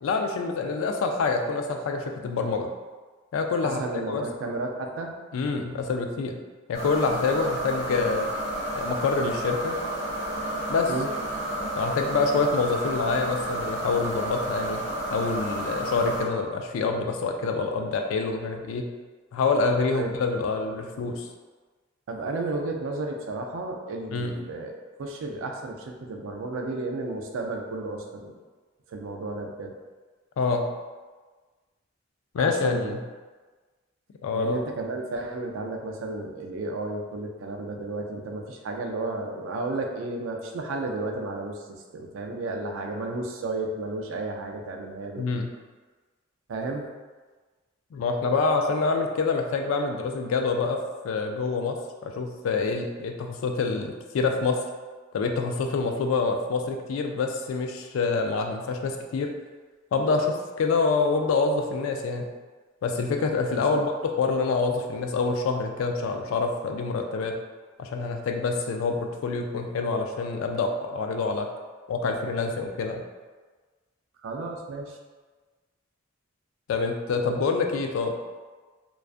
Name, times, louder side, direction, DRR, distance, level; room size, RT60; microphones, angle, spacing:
voice 1, 0.0-2.7 3.3-4.3 5.3-6.4 6.7-8.3 8.7-9.8 10.7-10.9 11.8-14.8 15.1-18.9 19.3-21.3 24.1-24.4 30.4-30.7 32.3-33.0 34.2-34.6 45.2-45.5 47.9-50.8 51.0-54.6 55.1-59.3 59.9-62.3 62.8-67.4 67.8-71.5 71.9-73.0 76.7-78.2, left 4 dB, 85° left, 4 dB, 0.3 m, -26 dB
voice 2, 3.8-5.2 10.9-11.1 19.9-20.1 22.1-24.7 25.0-28.3 28.9-29.7 32.4-32.9 34.3-41.6 41.9-45.2 46.5-46.9 63.5-63.8 74.2-75.0, right 2 dB, 80° right, 2 dB, 0.4 m, -32 dB
sound 1, 6.7-16.2, right 1 dB, 60° left, 0.7 m, -31 dB
2.4 x 2.3 x 2.4 m, 1.3 s
head